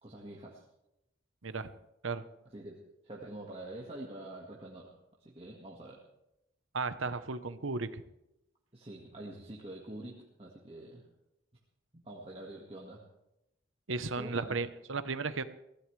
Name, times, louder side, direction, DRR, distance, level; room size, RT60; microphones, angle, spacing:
voice 1, 0.0-0.7 2.5-4.9 5.2-6.0 8.7-11.1 11.9-13.0 14.2-14.6, right 1 dB, 30° right, -3 dB, 1.8 m, -46 dB
voice 2, 6.7-8.0 13.9-15.4, right 4 dB, 85° right, 12 dB, 1.0 m, -35 dB
23.5 x 16.5 x 3.3 m, 0.88 s
head